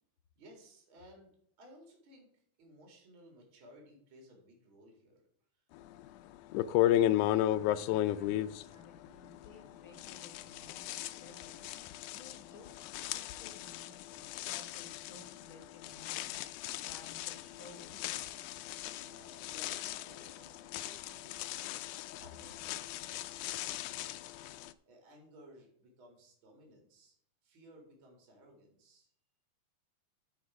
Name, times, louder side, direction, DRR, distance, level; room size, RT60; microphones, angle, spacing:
voice 1, 0.3-5.2 5.5-5.6 6.0-6.2 18.9-21.8 22.2-24.3 24.8-27.1 27.4-29.1, equal, 45° right, 1 dB, 2.8 m, -59 dB
sound 1, 6.0-6.1 6.5-9.7 10.0-24.7, left 13 dB, 80° left, 2.0 m, -35 dB
voice 2, 6.9-18.4, left 2 dB, 50° left, 3 dB, 1.9 m, -57 dB
14.0 x 4.8 x 4.7 m, 0.66 s
omnidirectional pair, 3.6 m